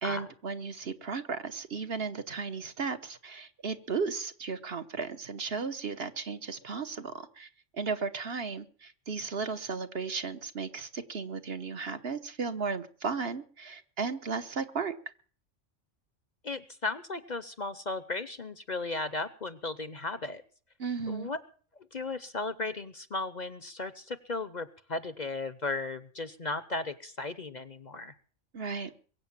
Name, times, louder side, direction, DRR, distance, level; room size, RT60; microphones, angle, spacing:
voice 1, 0.0-15.0 20.8-21.3 28.5-28.9, right 5 dB, 55° right, 9 dB, 1.3 m, -35 dB
voice 2, 16.4-20.4 21.1-21.4 21.9-28.1, left 3 dB, 40° left, 14 dB, 0.9 m, -35 dB
22.5 x 8.3 x 7.3 m, 0.43 s
omnidirectional pair, 1.2 m